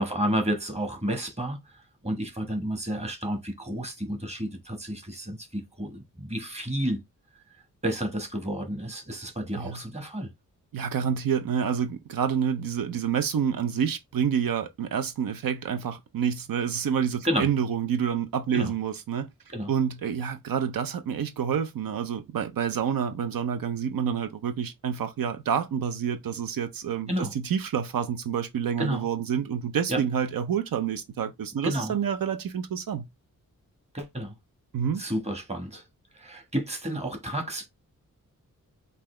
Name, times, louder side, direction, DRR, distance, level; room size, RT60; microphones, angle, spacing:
voice 1, 0.0-1.6 2.0-7.0 7.8-10.3 17.2-17.5 18.5-18.7 19.5-19.7 27.1-27.3 28.8-29.1 29.9-30.0 31.6-31.9 33.9-34.3 35.0-35.8 36.1-37.7, equal, 20° right, 1.3 m, -30 dB
voice 2, 10.7-19.3 19.7-33.0 34.7-35.0, right 8 dB, 90° right, 0.7 m, -28 dB
5.6 x 2.6 x 3.2 m
wide cardioid pair, 115°, 33 cm